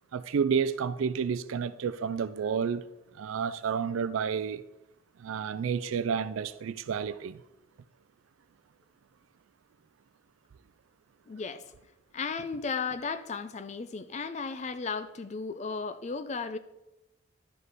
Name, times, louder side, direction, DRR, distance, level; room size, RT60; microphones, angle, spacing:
voice 1, 0.1-2.8 3.1-4.6 5.2-7.4, right 6 dB, 85° right, 0.4 m, -30 dB
voice 2, 11.3-11.6 12.1-16.6, left 5 dB, 35° left, 0.4 m, -35 dB
11.0 x 5.3 x 4.0 m
head